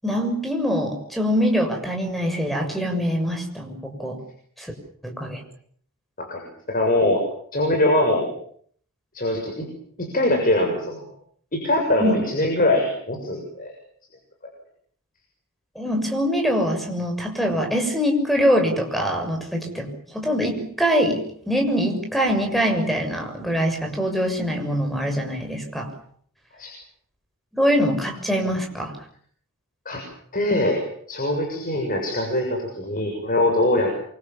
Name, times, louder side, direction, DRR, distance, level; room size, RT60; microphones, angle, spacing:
voice 1, 0.0-4.2 4.6-4.7 5.0-5.4 12.0-12.1 15.7-25.9 27.5-29.0, equal, ahead, 3 dB, 6.8 m, -23 dB
voice 2, 6.2-7.2 7.5-8.3 9.1-9.7 10.0-11.1 11.5-13.7 26.6-26.7 29.8-30.0 30.3-30.8 31.1-33.9, left 1 dB, 40° left, 2 dB, 6.9 m, -22 dB
28.0 x 25.0 x 7.5 m, 0.62 s
head